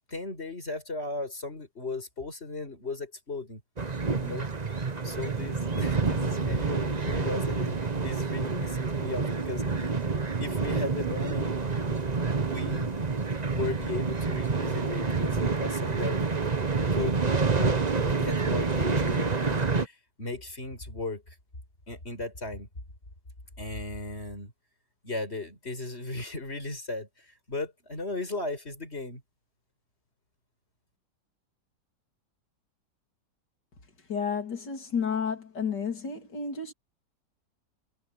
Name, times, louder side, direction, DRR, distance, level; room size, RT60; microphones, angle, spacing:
voice 1, 0.1-3.6 4.2-4.5 5.0-10.0 10.4-12.2 12.4-13.0 13.5-16.2 16.9-17.2 17.4-21.3 21.9-22.7 23.6-24.5 25.0-29.2, left 2 dB, 35° left, 6.0 m, -36 dB
sound 1, 3.8-19.9, right 4 dB, 25° right, 1.2 m, -28 dB
voice 2, 34.1-36.7, left 6 dB, 85° left, 3.7 m, -31 dB
omnidirectional pair, 1.8 m